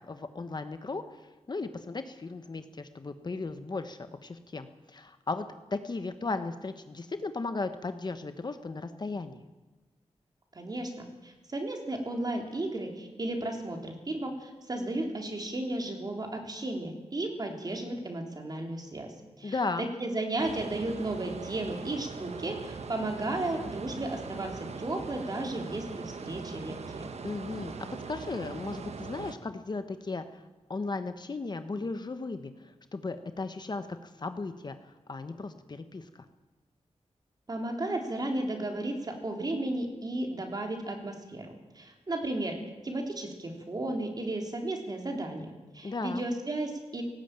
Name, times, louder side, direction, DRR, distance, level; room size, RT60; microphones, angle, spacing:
voice 1, 0.1-5.4 5.7-9.4 19.4-19.9 27.2-30.4 30.7-36.2 45.8-46.2, left 3 dB, 40° left, 9 dB, 1.2 m, -36 dB
voice 2, 10.5-27.1 37.5-47.0, right 2 dB, 35° right, 2 dB, 3.6 m, -34 dB
sound 1, 20.4-29.4, right 5 dB, 70° right, 1.3 m, -41 dB
18.5 x 16.5 x 9.0 m, 1.2 s
wide cardioid pair, 130°, 11 cm